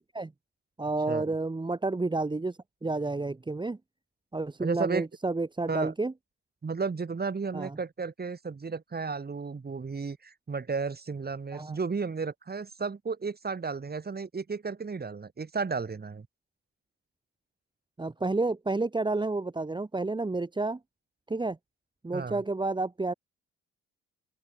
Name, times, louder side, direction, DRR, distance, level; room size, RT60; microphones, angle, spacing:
voice 1, 0.8-3.8 4.3-6.1 7.5-7.8 11.5-11.8 18.0-20.8 21.3-21.6 22.0-23.1, right 3 dB, 15° right, 1.3 m, -30 dB
voice 2, 4.6-5.1 5.7-5.9 6.6-16.3 22.1-22.4, right 4 dB, 30° right, 5.4 m, -33 dB
open air
cardioid pair, 90°, 30 cm